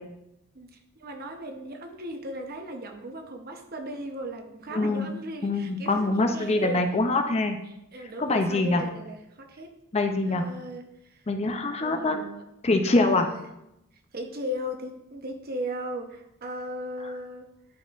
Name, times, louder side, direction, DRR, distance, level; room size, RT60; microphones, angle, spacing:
voice 1, 0.5-6.8 7.9-9.7 10.3-11.2 11.8-12.4 12.8-13.5 14.1-17.5, equal, 50° right, 4 dB, 0.8 m, -37 dB
voice 2, 4.7-5.1 5.4-7.6 8.2-8.8 9.9-10.5 11.3-12.2 12.6-13.3, left 2 dB, 30° left, 6 dB, 0.5 m, -24 dB
11.0 x 4.2 x 2.5 m, 0.85 s
head